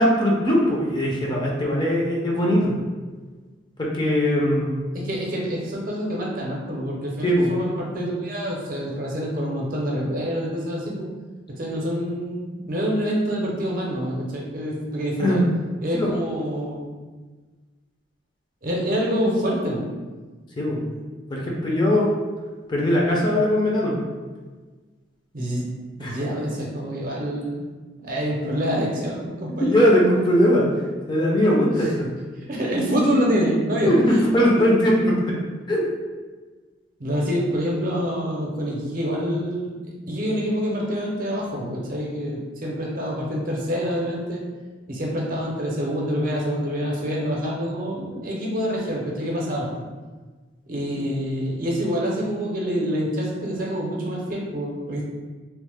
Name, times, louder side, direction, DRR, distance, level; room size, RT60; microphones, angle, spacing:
voice 1, 0.0-2.7 3.8-4.7 7.2-7.5 15.2-15.5 15.9-16.1 20.6-20.8 21.3-22.1 22.7-24.0 26.0-26.2 29.6-30.7 31.1-32.1 33.8-35.4 35.7-35.8 50.9-51.0, equal, 25° left, -3 dB, 0.5 m, -20 dB
voice 2, 4.9-11.0 11.6-15.4 15.8-16.9 18.6-19.9 25.3-25.6 26.0-27.7 28.0-29.7 32.5-33.9 37.0-39.8 40.1-44.4 44.9-49.7 50.7-55.0, equal, 50° right, -2 dB, 0.6 m, -26 dB
3.0 x 2.0 x 3.4 m, 1.3 s
head